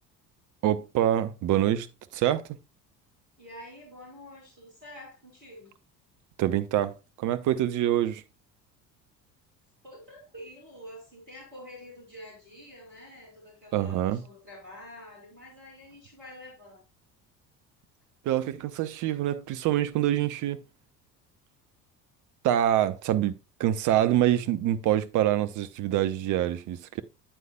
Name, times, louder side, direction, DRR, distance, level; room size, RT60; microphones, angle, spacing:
voice 1, 0.6-1.9 2.1-2.4 6.4-8.2 13.7-14.2 18.2-20.6 22.4-27.0, right 12 dB, 40° right, 0.7 m, -25 dB
voice 2, 3.4-5.7 9.8-16.8, left 1 dB, 80° right, 4.1 m, -47 dB
8.8 x 8.2 x 2.2 m
figure-of-eight pair, 60°, 49 cm